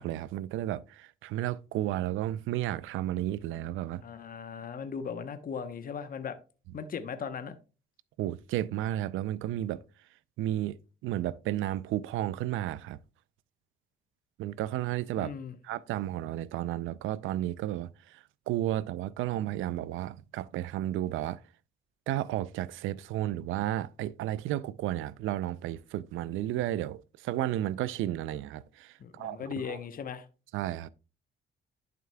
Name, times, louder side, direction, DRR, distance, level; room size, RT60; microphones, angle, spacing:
voice 1, 0.0-4.0 8.2-9.8 10.4-10.8 11.0-13.0 14.4-15.3 15.6-17.9 18.5-21.4 22.1-29.4 29.7-29.8 30.5-30.9, right 13 dB, 85° right, 0.4 m, -32 dB
voice 2, 4.0-6.4 6.7-7.6 15.2-15.6 29.0-30.3, left 6 dB, 45° left, 0.9 m, -38 dB
11.0 x 5.9 x 2.2 m
cardioid pair, 90°, 20 cm